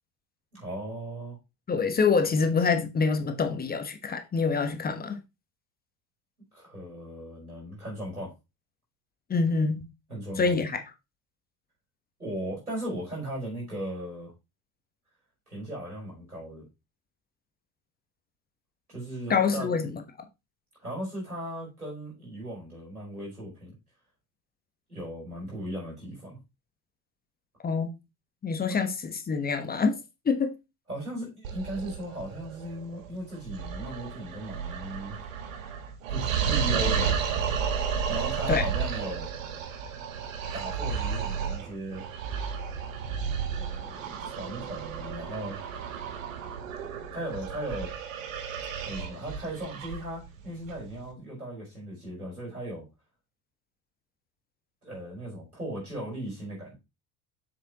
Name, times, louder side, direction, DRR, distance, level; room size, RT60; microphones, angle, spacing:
voice 1, 0.5-1.4 6.5-8.3 10.1-10.6 12.2-14.3 15.5-16.6 18.9-19.7 20.8-23.8 24.9-26.4 28.7-28.8 30.9-35.2 36.1-37.3 38.1-39.3 40.5-42.0 43.6-45.6 47.1-47.9 48.8-52.9 54.8-56.8, right 1 dB, 85° right, 5.0 m, -37 dB
voice 2, 1.7-5.2 9.3-9.9 10.4-10.8 19.3-19.9 27.6-27.9 28.4-30.0 30.2-30.5 38.5-38.6, left 5 dB, 20° left, 1.2 m, -26 dB
sound 1, 31.4-51.1, right 6 dB, 65° right, 1.4 m, -32 dB
7.3 x 6.8 x 3.0 m
figure-of-eight pair, 70°, 43 cm